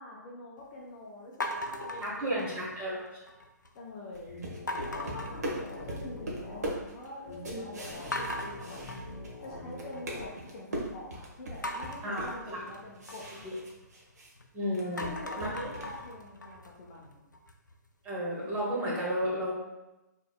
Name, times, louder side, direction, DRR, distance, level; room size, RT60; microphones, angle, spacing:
voice 1, 0.0-3.0 3.7-4.3 4.9-9.0 9.4-13.6 14.8-17.2, left 2 dB, 30° left, -3 dB, 0.7 m, -46 dB
sound 1, 1.4-2.9 3.3-3.8 4.7-6.2 6.5-7.1 7.5-7.6 8.1-10.2 11.6-14.4 14.8-17.7, left 1 dB, 85° left, 0.5 m, -40 dB
voice 2, 2.0-3.0 7.5-7.6 12.0-12.6 13.4-13.5 14.5-15.7 18.0-19.5, equal, 15° right, -5 dB, 1.2 m, -33 dB
sound 2, 4.1-9.4 9.7-14.3 14.6-16.0, right 1 dB, 60° right, 1.1 m, -40 dB
sound 3, 4.3-6.7 7.3-10.3, left 1 dB, 50° left, 1.1 m, -43 dB
5.4 x 3.2 x 2.3 m, 1.0 s
figure-of-eight pair, 130°, 10 cm